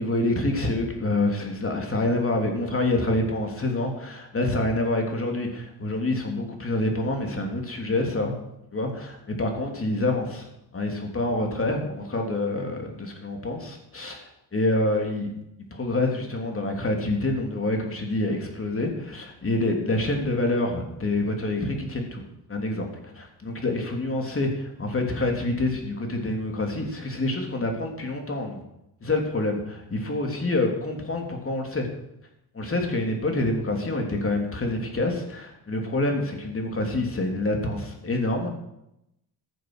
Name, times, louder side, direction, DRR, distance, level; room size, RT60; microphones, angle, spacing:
voice 1, 0.0-8.3 8.7-10.5 10.7-15.3 15.7-22.2 22.5-22.9 23.1-28.6 29.0-31.9 32.5-38.5, left 2 dB, 30° left, 2 dB, 3.4 m, -27 dB
15.0 x 8.0 x 6.3 m, 0.84 s
cardioid pair, 90°, 41 cm